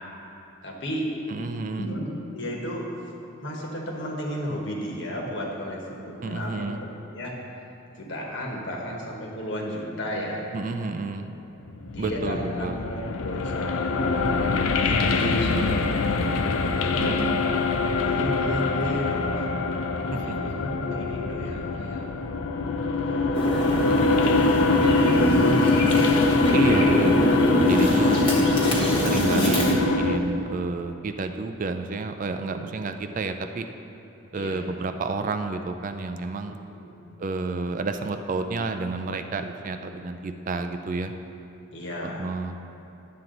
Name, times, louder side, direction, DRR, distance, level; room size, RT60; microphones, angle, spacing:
voice 1, 0.6-1.1 1.8-3.0 3.4-7.4 8.0-10.4 11.2-11.4 11.9-14.2 14.7-16.2 16.8-17.2 18.0-19.4 20.2-22.1 23.0-25.2 29.2-29.6 29.9-30.1 32.5-32.8 34.3-34.7 36.5-37.1 39.4-39.7 41.7-42.3, equal, 60° left, -1 dB, 1.4 m, -34 dB
voice 2, 1.3-1.9 6.2-6.8 10.5-11.3 12.0-12.8 17.0-17.3 20.1-20.5 25.4-25.9 26.5-28.3 29.0-33.7 34.3-36.6 37.2-41.1 42.0-42.6, right 3 dB, 40° right, 7 dB, 0.4 m, -30 dB
sound 1, 11.7-30.2, left 3 dB, 80° left, 0.5 m, -24 dB
sound 2, 23.3-29.7, equal, 25° left, 1.3 m, -24 dB
11.0 x 7.6 x 3.9 m, 2.8 s
head